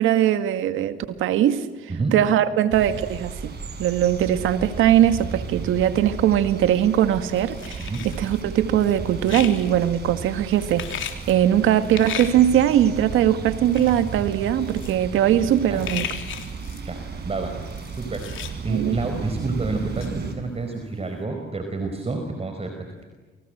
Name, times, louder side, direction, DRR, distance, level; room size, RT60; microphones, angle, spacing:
voice 1, 0.0-1.7 2.1-16.1 18.7-19.0, right 11 dB, 90° right, 10 dB, 1.9 m, -21 dB
sound 1, 2.7-20.4, right 5 dB, 55° right, 6.4 m, -34 dB
sound 2, 7.4-8.4 8.8-9.9 10.5-11.3 11.8-12.4 13.3-13.4 13.7-14.3 14.6-15.0 15.3-15.4 15.5-16.9 17.6-18.5 18.9-19.0 19.4-19.5 20.0-20.1 20.6-20.7, left 10 dB, 80° left, 3.3 m, -35 dB
voice 2, 16.8-17.6 17.9-18.3 18.6-23.0, right 3 dB, 30° right, 5 dB, 4.9 m, -29 dB
29.5 x 24.5 x 8.0 m, 1.2 s
cardioid pair, 90°, 20 cm